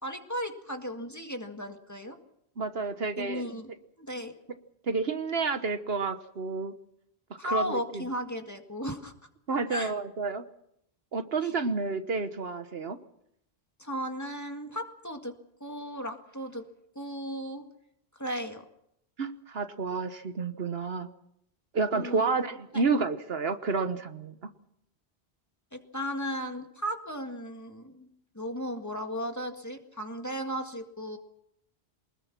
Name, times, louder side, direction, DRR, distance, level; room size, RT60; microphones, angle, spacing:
voice 1, 0.0-2.2 3.2-4.3 7.4-9.1 9.7-9.9 11.4-11.5 13.8-15.4 15.6-16.7 17.0-17.6 18.1-18.6 21.9-22.3 22.7-22.8 25.7-28.1 28.3-31.2, equal, 15° left, 4 dB, 1.9 m, -35 dB
voice 2, 2.6-3.5 4.9-6.7 7.5-7.8 9.5-10.4 11.1-13.0 19.2-21.1 21.7-24.3, right 4 dB, 70° right, 10 dB, 1.3 m, -30 dB
24.0 x 20.5 x 6.0 m, 0.76 s
omnidirectional pair, 1.1 m